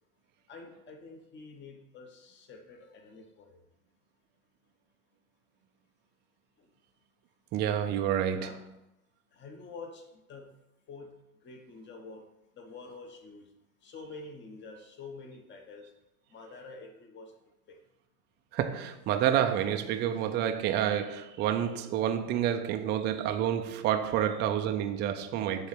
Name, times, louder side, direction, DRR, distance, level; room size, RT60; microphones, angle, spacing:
voice 1, 0.5-3.6 8.3-8.6 9.3-10.5 10.9-11.2 11.4-12.3 12.5-13.5 13.8-15.9 16.3-17.3 17.7-17.8, left 3 dB, 25° left, 1.1 m, -47 dB
voice 2, 7.5-8.6 18.5-25.7, right 10 dB, 25° right, 0.4 m, -29 dB
7.0 x 3.3 x 5.9 m
hypercardioid pair, 110°, 45 cm